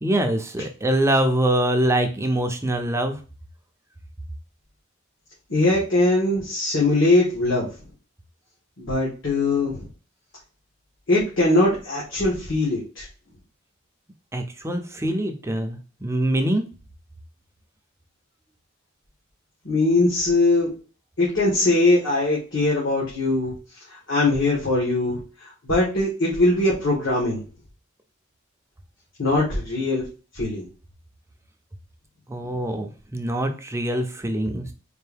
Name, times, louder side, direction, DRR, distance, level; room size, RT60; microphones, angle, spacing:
voice 1, 0.0-3.2 14.3-16.7 32.3-34.7, right 1 dB, 15° right, 5 dB, 0.5 m, -24 dB
voice 2, 5.5-7.7 8.8-9.8 11.1-13.1 19.6-20.7 21.2-23.5 23.9-27.4 29.2-30.0 30.3-30.6, left 2 dB, 65° left, -5 dB, 1.6 m, -21 dB
4.5 x 2.6 x 3.4 m, 0.35 s
head